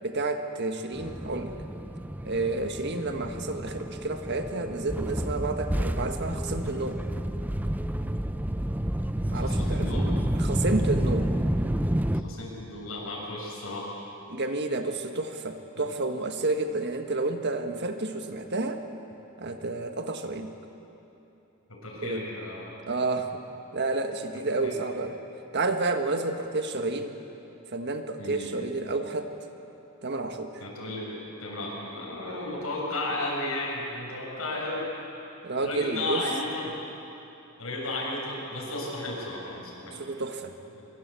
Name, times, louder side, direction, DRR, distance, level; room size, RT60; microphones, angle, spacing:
voice 1, 0.0-1.5 2.2-7.0 9.3-9.9 10.4-11.3 14.3-18.8 19.4-20.5 22.0-22.2 22.9-23.3 23.7-25.2 25.5-27.2 27.7-29.3 30.0-30.5 35.4-36.2 39.9-40.5, right 2 dB, 55° right, 6 dB, 1.6 m, -30 dB
sound 1, 0.9-12.2, right 1 dB, 10° right, 0.6 m, -29 dB
voice 2, 9.3-10.2 12.2-14.0 15.8-15.9 21.7-22.7 24.6-24.7 28.2-28.5 30.6-34.9 35.6-36.7 37.6-40.0 40.8-40.9, left 2 dB, 80° left, -3 dB, 7.0 m, -34 dB
23.5 x 23.0 x 8.4 m, 3.0 s
head